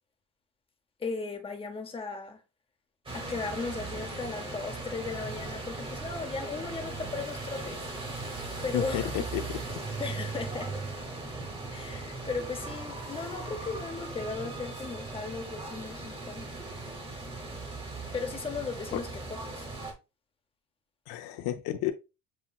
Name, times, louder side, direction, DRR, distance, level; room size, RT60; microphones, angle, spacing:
voice 1, 1.0-2.4 3.1-7.9 8.6-9.1 10.0-10.7 11.7-16.5 18.1-19.6, left 4 dB, 15° left, 0.6 m, -36 dB
sound 1, 3.1-19.9, right 3 dB, 15° right, 0.8 m, -38 dB
voice 2, 8.7-9.6 18.9-19.0 21.1-21.9, left 13 dB, 75° left, 0.6 m, -31 dB
7.1 x 2.9 x 2.3 m
cardioid pair, 165°, 38 cm